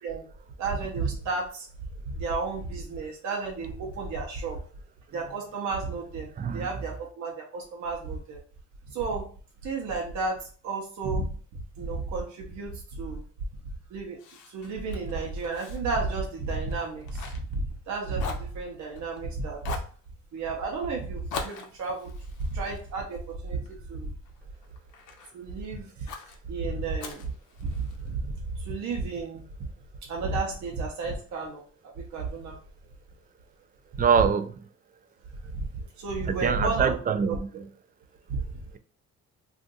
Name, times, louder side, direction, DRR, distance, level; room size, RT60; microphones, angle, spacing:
voice 1, 0.6-1.7 2.1-4.6 5.1-8.4 8.9-9.3 9.6-11.3 11.5-13.2 13.9-14.2 14.5-19.8 20.3-22.1 22.4-24.1 25.3-26.1 26.5-27.3 27.6-29.7 30.1-32.6 33.9-34.0 35.4-35.7 36.0-37.0 37.3-37.6 38.3-38.4, right 3 dB, 70° right, 0.8 m, -32 dB
voice 2, 6.4-6.7 34.0-34.6 36.3-37.5, right 7 dB, 30° right, 0.4 m, -24 dB
Fire, 14.2-17.9 18.2-19.2 19.6-20.0 21.3-23.7 24.2-25.3 26.1-26.4 27.0-28.1, left 5 dB, 80° left, 0.7 m, -42 dB
2.5 x 2.5 x 3.9 m
cardioid pair, 90°, 30 cm